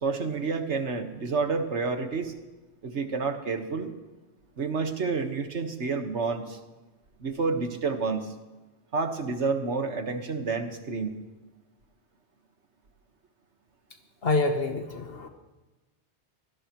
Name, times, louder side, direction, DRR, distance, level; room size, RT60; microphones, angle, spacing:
voice 1, 0.0-2.3 2.8-3.9 4.6-6.6 7.2-8.3 8.9-11.1, right 4 dB, 75° right, 6 dB, 1.8 m, -29 dB
voice 2, 14.2-15.3, left 2 dB, 60° left, 5 dB, 1.3 m, -26 dB
24.5 x 18.5 x 3.1 m, 1.2 s
omnidirectional pair, 1.2 m